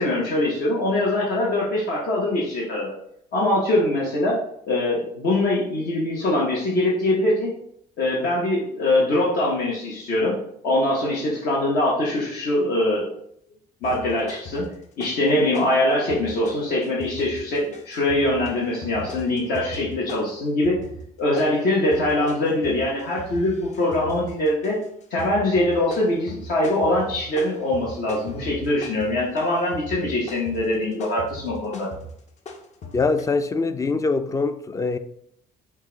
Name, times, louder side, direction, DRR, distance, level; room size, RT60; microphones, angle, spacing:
voice 1, 0.0-2.9 3.3-4.4 4.7-7.5 8.0-10.4 10.6-13.1 13.8-14.7 15.0-20.8 21.2-24.8 25.1-31.9, left 1 dB, 65° left, 1.2 m, -23 dB
sound 1, 13.8-15.3 15.5-33.2, left 1 dB, 45° left, 0.7 m, -39 dB
voice 2, 32.9-35.0, left 3 dB, 20° left, 0.3 m, -23 dB
5.3 x 2.4 x 3.9 m
cardioid pair, 110°, 17 cm